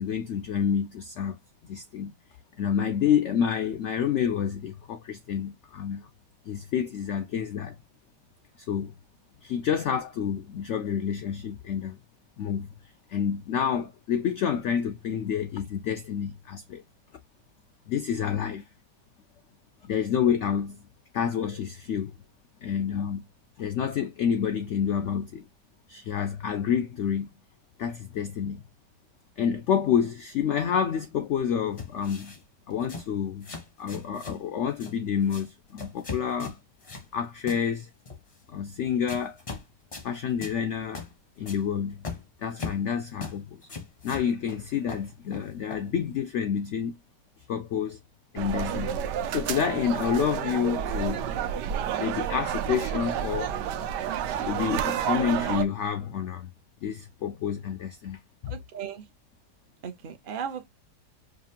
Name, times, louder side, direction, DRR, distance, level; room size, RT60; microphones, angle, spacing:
voice 1, 0.0-1.4 1.6-2.2 2.6-6.1 6.4-7.8 8.6-9.0 9.4-12.0 12.4-12.7 13.1-16.8 17.9-18.7 19.8-20.8 21.1-22.1 22.6-23.3 23.6-25.4 25.9-27.3 27.8-28.6 29.4-32.3 32.7-33.5 33.8-36.6 37.1-37.9 38.5-39.4 40.0-41.0 41.4-42.1 42.4-43.6 44.0-47.0 47.5-48.0 48.3-51.3 52.0-53.6 54.4-56.5 56.8-58.5, left 8 dB, 85° left, 0.6 m, -28 dB
sound 1, 31.8-32.4 32.8-33.1 33.4-34.4 34.7-35.0 35.2-35.5 35.8-37.1 37.5-37.6 38.0-38.4 39.1-39.6 39.9-40.1 40.4-40.6 40.9-41.1 41.4-41.6 42.0-42.9 43.2-43.4 43.6-44.6 44.9-45.9, left 4 dB, 40° left, 0.5 m, -39 dB
sound 2, 48.4-55.6, right 9 dB, 80° right, 1.2 m, -30 dB
voice 2, 58.5-59.0 59.8-60.7, right 7 dB, 60° right, 0.5 m, -36 dB
5.0 x 2.4 x 2.7 m
omnidirectional pair, 1.8 m